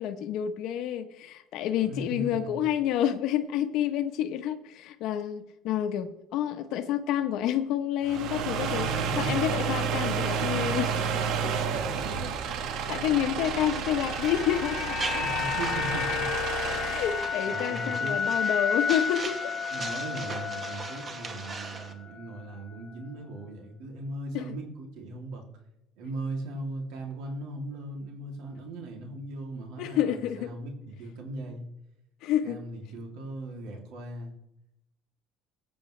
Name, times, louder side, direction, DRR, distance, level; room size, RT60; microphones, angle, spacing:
voice 1, 0.0-8.9 9.2-11.1 11.4-11.5 12.7-15.0 16.8-19.5 24.3-24.4 29.8-30.5 32.2-32.6, left 10 dB, 65° left, 7 dB, 0.9 m, -29 dB
voice 2, 1.8-2.6 8.6-9.5 11.7-12.3 15.1-16.3 17.5-18.2 19.7-25.4 26.0-31.6 32.4-34.3, right 2 dB, 80° right, 1 dB, 2.8 m, -38 dB
sound 1, 8.0-17.4, right 6 dB, 60° right, 1.2 m, -31 dB
sound 2, 13.4-21.9, right 4 dB, 25° right, 1.2 m, -40 dB
sound 3, 13.6-21.9 22.2-22.3, left 7 dB, 35° left, 0.8 m, -32 dB
21.0 x 8.9 x 3.3 m, 0.84 s
cardioid pair, 150°, 0 cm